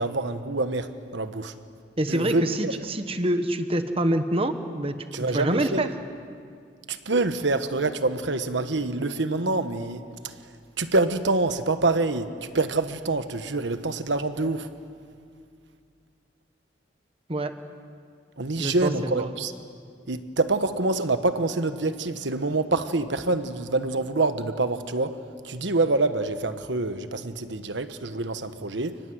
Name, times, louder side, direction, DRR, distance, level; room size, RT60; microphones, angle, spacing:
voice 1, 0.0-1.5 2.1-2.8 5.1-5.9 6.9-10.5 10.8-14.7 18.4-19.5 20.1-29.0, right 2 dB, 75° right, 10 dB, 1.2 m, -26 dB
voice 2, 2.0-4.9 5.3-5.9 17.3-17.5 18.6-18.9 19.2-19.3, right 1 dB, 30° right, 8 dB, 1.3 m, -26 dB
29.5 x 19.5 x 7.9 m, 2.3 s
head